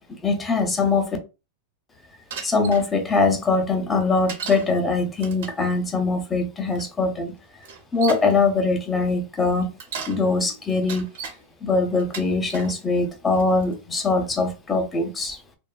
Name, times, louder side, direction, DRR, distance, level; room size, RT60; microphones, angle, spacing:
voice 1, 0.2-1.1 2.4-7.3 7.9-9.7 10.1-11.1 11.6-15.4, left 3 dB, 10° left, 0.4 m, -22 dB
Bicycle, 2.3-2.9 4.3-4.7 5.2-5.6 6.7-6.8 7.6-8.3 9.6-10.2 10.7-11.4 12.0-12.7 13.3-13.7, right 6 dB, 65° right, 0.6 m, -35 dB
2.6 x 2.2 x 2.3 m
supercardioid pair, 175°, 0 cm